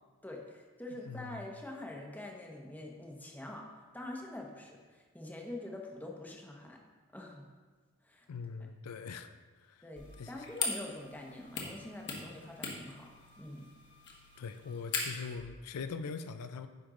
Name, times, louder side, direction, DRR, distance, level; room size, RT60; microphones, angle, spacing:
voice 1, 0.2-3.7 3.9-6.8 7.1-7.5 8.0-8.3 9.8-13.1 13.4-13.7, left 1 dB, 5° left, 0 dB, 0.9 m, -45 dB
voice 2, 1.1-1.4 8.3-9.3 9.6-9.8 10.2-10.3 14.4-16.7, left 5 dB, 90° left, 9 dB, 0.4 m, -42 dB
sound 1, 10.0-15.4, left 4 dB, 55° left, 1.3 m, -41 dB
9.6 x 5.3 x 3.8 m, 1.4 s
head